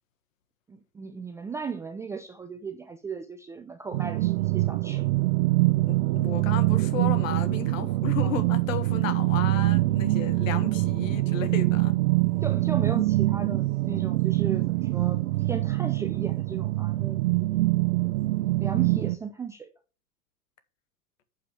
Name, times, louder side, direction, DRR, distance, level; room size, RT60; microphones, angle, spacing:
voice 1, 0.7-5.1 8.2-8.5 12.4-17.2 18.6-19.7, right 5 dB, 5° right, 0.3 m, -36 dB
sound 1, 3.9-19.2, right 19 dB, 50° right, 0.8 m, -24 dB
voice 2, 5.9-11.9, left 9 dB, 60° left, 1.7 m, -34 dB
7.1 x 5.7 x 6.6 m
figure-of-eight pair, 95°, 43 cm